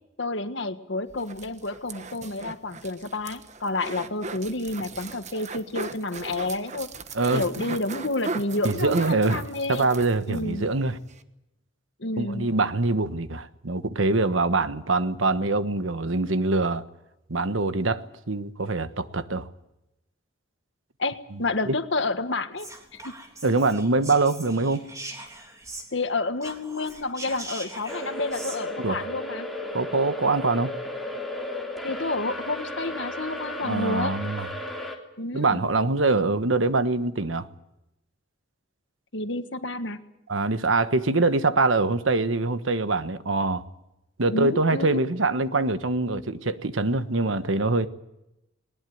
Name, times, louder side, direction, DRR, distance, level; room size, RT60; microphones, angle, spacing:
voice 1, 0.2-6.9 7.3-9.9 10.3-10.7 12.0-12.5 21.0-23.1 25.9-29.5 31.8-34.1 35.2-35.6 39.1-40.0 44.3-45.1, left 2 dB, 65° left, 1.7 m, -30 dB
sound 1, 1.1-10.5 10.8-10.9 11.1-11.2, right 3 dB, 35° right, 1.2 m, -38 dB
voice 2, 7.1-7.7 8.6-9.4 9.7-11.0 12.2-16.8 17.3-19.5 21.6-21.7 23.4-24.9 28.8-29.0 29.7-30.7 33.6-34.5 35.3-37.5 40.3-43.6 44.2-47.9, right 3 dB, 90° right, 1.3 m, -24 dB
Whispering, 22.6-26.1 26.4-28.6, right 2 dB, 15° right, 3.8 m, -41 dB
sound 2, 27.9-35.0, left 1 dB, ahead, 3.3 m, -34 dB
20.0 x 20.0 x 9.3 m
head